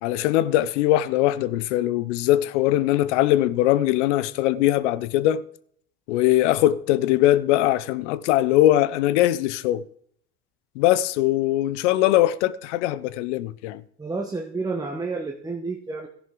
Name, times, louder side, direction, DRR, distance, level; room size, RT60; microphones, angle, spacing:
voice 1, 0.0-5.4 6.1-9.8 10.8-13.8, left 14 dB, 70° left, 0.7 m, -21 dB
voice 2, 14.0-16.1, right 3 dB, 10° right, 1.2 m, -30 dB
14.0 x 10.5 x 3.8 m
hypercardioid pair, 70°, 36 cm